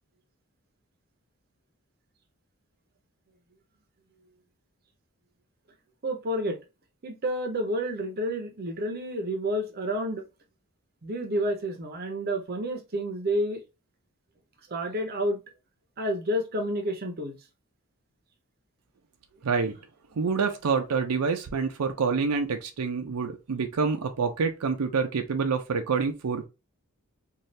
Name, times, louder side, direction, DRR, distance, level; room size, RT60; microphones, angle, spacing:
voice 1, 6.0-6.6 7.0-10.2 11.0-13.6 14.7-15.4 16.0-17.4, equal, 45° right, 0.6 m, -29 dB
voice 2, 19.4-19.8 20.2-26.5, right 5 dB, 85° right, 0.5 m, -27 dB
2.7 x 2.4 x 3.1 m
head